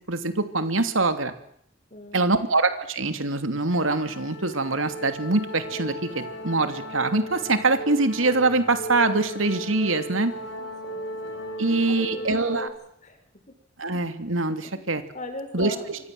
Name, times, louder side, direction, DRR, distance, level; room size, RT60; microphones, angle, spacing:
voice 1, 0.1-1.3 2.1-10.3 11.6-12.7 13.8-15.0 15.5-16.0, right 3 dB, 90° right, 9 dB, 3.0 m, -24 dB
voice 2, 1.9-2.4 10.4-11.0 11.9-12.7 13.0-13.2 15.1-15.9, left 2 dB, 40° left, 8 dB, 5.7 m, -39 dB
sound 1, 3.7-12.7, equal, 65° left, 7.5 m, -36 dB
29.0 x 25.0 x 7.9 m, 0.67 s
head